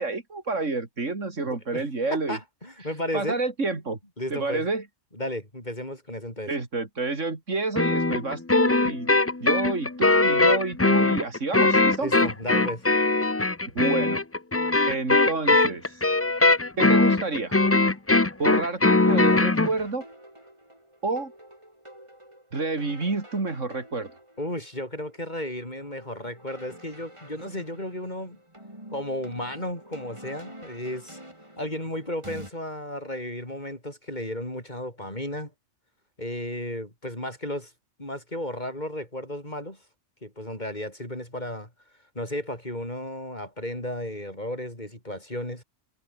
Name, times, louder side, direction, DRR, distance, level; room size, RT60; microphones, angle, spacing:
voice 1, 0.0-2.4 3.1-4.0 4.3-4.9 6.5-9.1 9.4-12.1 13.7-14.2 14.9-16.0 16.8-17.6 18.4-20.0 21.0-21.3 22.5-24.1, right 3 dB, 80° right, 3.6 m, -29 dB
voice 2, 1.5-1.8 2.1-3.4 4.2-4.6 5.1-6.5 12.0-12.8 24.4-28.4 28.9-31.2 31.6-35.5 36.2-37.7 38.0-39.8 40.2-41.7 42.1-45.6, left 1 dB, 35° left, 7.7 m, -34 dB
sound 1, 7.8-19.7, left 2 dB, 15° left, 0.5 m, -21 dB
sound 2, 17.5-32.5, right 1 dB, 25° right, 7.8 m, -48 dB
omnidirectional pair, 1.3 m